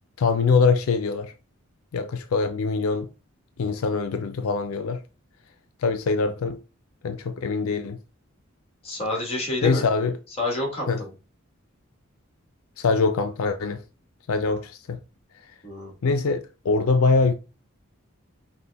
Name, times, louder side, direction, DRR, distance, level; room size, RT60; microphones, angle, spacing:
voice 1, 0.2-1.3 1.9-3.1 3.6-5.0 5.8-6.6 7.0-8.0 9.6-10.2 10.9-11.0 12.8-13.8 14.3-15.0 16.0-17.3, left 4 dB, 90° left, 0.4 m, -23 dB
voice 2, 8.8-9.8 10.4-11.1 15.6-15.9, left 2 dB, 30° left, 1.6 m, -28 dB
5.7 x 2.2 x 3.4 m
head